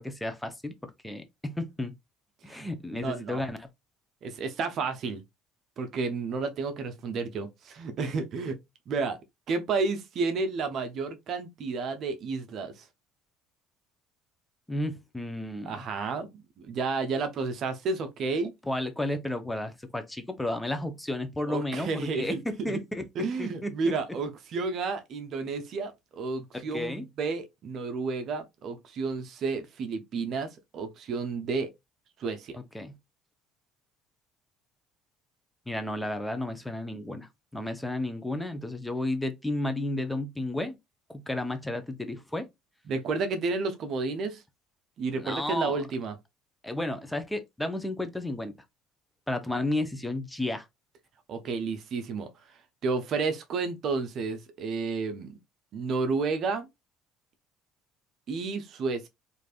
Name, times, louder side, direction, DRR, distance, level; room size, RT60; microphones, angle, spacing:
voice 1, 0.0-1.9 2.4-3.7 14.7-15.8 18.7-23.1 23.4-23.7 26.5-27.0 32.7-32.9 35.7-40.8 41.1-42.5 45.1-45.8 46.6-48.5 49.3-50.6, left 1 dB, 10° left, 0.6 m, -32 dB
voice 2, 2.5-3.4 4.2-5.2 5.8-8.6 8.9-9.2 9.5-12.8 15.6-18.5 21.5-22.8 23.2-31.7 32.2-32.6 42.9-44.4 45.0-46.2 51.3-55.4 55.7-56.7 58.3-59.1, right 4 dB, 55° right, 0.6 m, -31 dB
3.2 x 2.5 x 2.3 m
hypercardioid pair, 65°, 0 cm